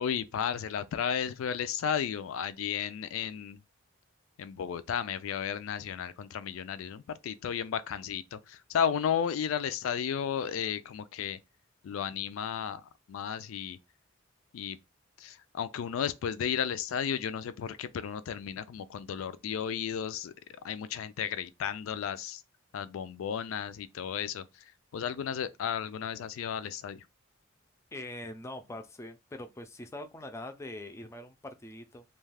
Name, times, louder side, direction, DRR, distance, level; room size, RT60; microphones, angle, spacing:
voice 1, 0.0-3.6 4.4-11.4 11.8-13.8 14.5-14.8 15.2-20.3 20.6-22.4 22.7-24.4 24.9-27.0, left 8 dB, 90° left, 0.3 m, -33 dB
voice 2, 27.9-32.0, left 1 dB, 15° left, 0.4 m, -43 dB
2.3 x 2.3 x 3.3 m
head